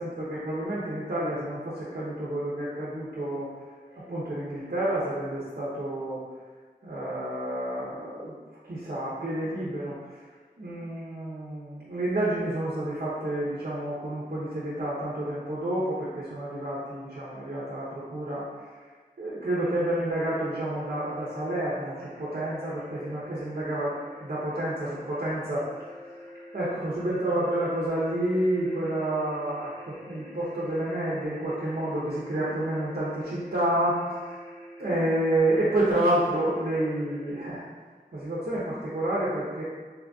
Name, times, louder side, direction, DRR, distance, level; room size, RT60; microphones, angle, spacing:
voice 1, 0.0-3.5 3.9-6.2 6.8-8.3 8.6-10.0 10.6-18.4 19.2-25.7 26.5-34.4 34.8-37.6 38.1-39.6, right 1 dB, 60° right, -8 dB, 0.8 m, -29 dB
sound 1, 19.4-37.4, equal, 15° left, 0.7 m, -46 dB
4.1 x 2.6 x 2.3 m, 1.4 s
wide cardioid pair, 60°, 17 cm